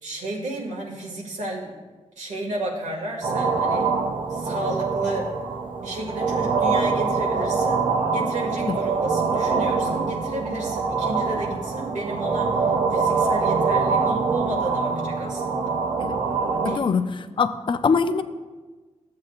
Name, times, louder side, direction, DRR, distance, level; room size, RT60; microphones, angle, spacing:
voice 1, 0.0-1.7 2.2-3.9 4.3-5.3 5.8-15.8 16.7-16.9, right 1 dB, 85° right, -1 dB, 1.8 m, -32 dB
sound 1, 3.2-16.8, right 4 dB, 40° right, 0.5 m, -24 dB
voice 2, 16.6-17.1 17.4-18.2, left 5 dB, 45° left, 11 dB, 0.4 m, -22 dB
14.0 x 7.5 x 2.4 m, 1.3 s
wide cardioid pair, 145°, 12 cm